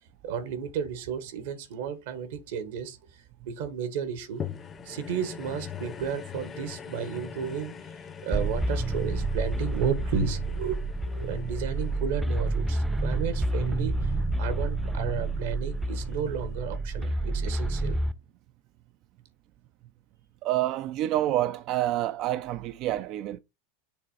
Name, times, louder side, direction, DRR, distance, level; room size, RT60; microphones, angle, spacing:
voice 1, 0.2-3.0 3.5-4.4 4.8-7.7 8.2-13.9 14.4-18.0, right 7 dB, 75° right, 1.4 m, -33 dB
sound 1, 4.4-14.9 15.5-15.6, left 7 dB, 30° left, 0.8 m, -43 dB
sound 2, 8.3-18.1, right 2 dB, 5° right, 0.6 m, -29 dB
voice 2, 20.4-23.4, right 14 dB, 50° right, 0.4 m, -28 dB
6.9 x 3.1 x 4.8 m
hypercardioid pair, 105°, 0 cm